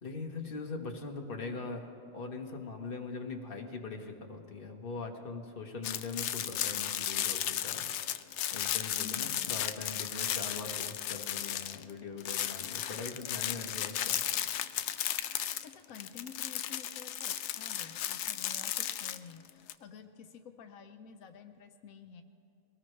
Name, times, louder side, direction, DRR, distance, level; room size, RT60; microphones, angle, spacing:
voice 1, 0.0-1.9 2.1-7.9 8.5-14.2, left 4 dB, 45° left, 2 dB, 1.5 m, -41 dB
sound 1, 5.8-11.9 12.2-19.7, left 11 dB, 65° left, 0.8 m, -35 dB
voice 2, 9.0-9.5 15.2-22.2, left 6 dB, 85° left, 7 dB, 1.2 m, -51 dB
22.5 x 18.5 x 3.3 m, 2.9 s
omnidirectional pair, 1.4 m